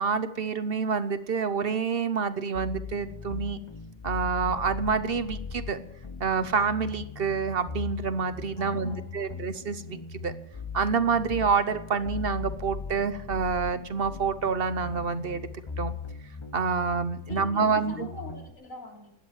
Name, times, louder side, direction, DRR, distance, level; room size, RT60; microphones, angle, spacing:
voice 1, 0.0-3.6 4.0-5.8 6.2-10.3 10.7-15.5 15.8-15.9 16.5-18.1, right 5 dB, 50° right, 13 dB, 1.0 m, -27 dB
sound 1, 2.5-18.5, left 5 dB, 25° left, 0.7 m, -39 dB
voice 2, 8.6-9.4 17.3-19.1, left 3 dB, 75° left, 0 dB, 4.1 m, -44 dB
17.0 x 11.0 x 7.4 m, 0.78 s
omnidirectional pair, 1.4 m